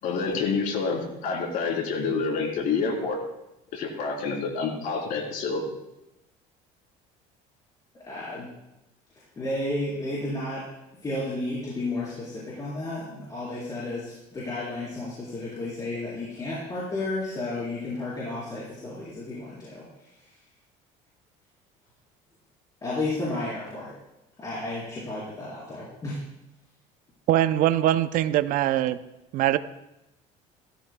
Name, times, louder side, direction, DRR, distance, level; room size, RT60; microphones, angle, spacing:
voice 1, 0.0-3.2 3.7-5.6, left 4 dB, 60° left, 0 dB, 3.5 m, -28 dB
voice 2, 8.1-8.5 9.4-10.6 11.0-20.3 22.8-23.9 24.4-26.2, left 2 dB, 25° left, -8 dB, 4.1 m, -32 dB
voice 3, 27.3-29.0 29.3-29.6, right 13 dB, 60° right, 12 dB, 0.6 m, -22 dB
17.0 x 13.5 x 2.3 m, 0.91 s
cardioid pair, 125°, 16 cm